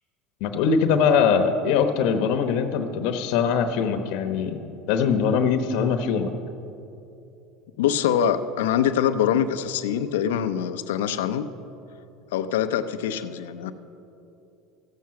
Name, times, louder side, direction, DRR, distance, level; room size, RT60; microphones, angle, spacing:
voice 1, 0.4-4.6 4.9-6.3, left 6 dB, 70° left, 8 dB, 1.0 m, -22 dB
voice 2, 7.8-11.5 12.3-13.7, left 9 dB, 85° left, 10 dB, 0.6 m, -24 dB
15.0 x 7.6 x 5.9 m, 2.8 s
supercardioid pair, 110°, 0 cm